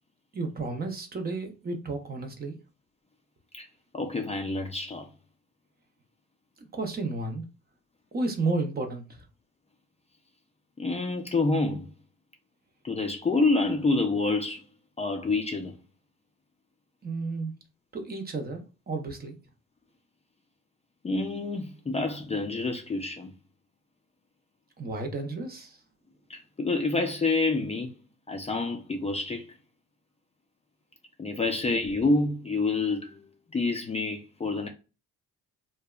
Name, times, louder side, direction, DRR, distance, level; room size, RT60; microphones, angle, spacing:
voice 1, 0.3-2.5 6.7-7.4 8.1-9.0 17.0-17.5 17.9-19.4 24.8-25.8, right 3 dB, 30° right, 0.6 m, -32 dB
voice 2, 3.9-5.1 10.8-11.9 12.8-14.6 15.0-15.7 21.0-23.3 26.3-27.9 28.3-29.4 31.2-33.2 33.5-34.7, left 3 dB, 20° left, 0.4 m, -27 dB
2.7 x 2.1 x 2.3 m
cardioid pair, 90°, 30 cm